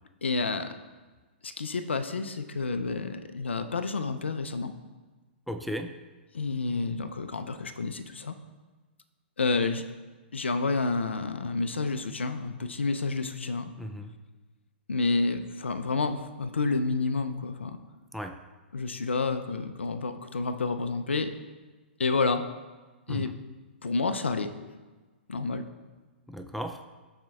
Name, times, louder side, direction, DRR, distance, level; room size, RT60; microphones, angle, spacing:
voice 1, 0.2-0.7 1.4-4.7 6.3-8.3 9.4-9.8 10.3-13.7 14.9-17.8 18.7-21.3 22.0-22.4 23.1-23.3 23.8-24.5 25.3-25.7, left 3 dB, 85° left, 9 dB, 0.5 m, -29 dB
voice 2, 5.5-6.0 13.8-14.1 18.1-18.4 23.1-23.3 26.3-26.8, equal, ahead, 5 dB, 0.3 m, -36 dB
13.0 x 4.3 x 2.3 m, 1.3 s
hypercardioid pair, 115°, 6 cm